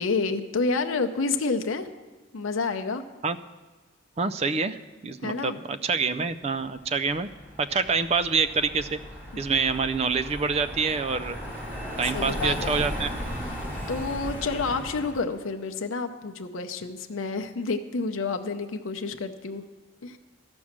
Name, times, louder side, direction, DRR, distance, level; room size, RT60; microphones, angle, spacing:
voice 1, 0.0-1.9 2.3-3.0 5.2-5.6 9.3-9.4 12.1-12.8 13.9-19.6 20.0-20.2, left 4 dB, 90° left, 6 dB, 0.6 m, -29 dB
voice 2, 4.2-7.3 7.6-9.0 9.4-11.4 12.0-13.1, right 5 dB, 30° right, 14 dB, 0.4 m, -26 dB
Car passing by, 6.8-15.3, equal, 10° right, 2.5 m, -36 dB
13.0 x 6.2 x 7.3 m, 1.3 s
head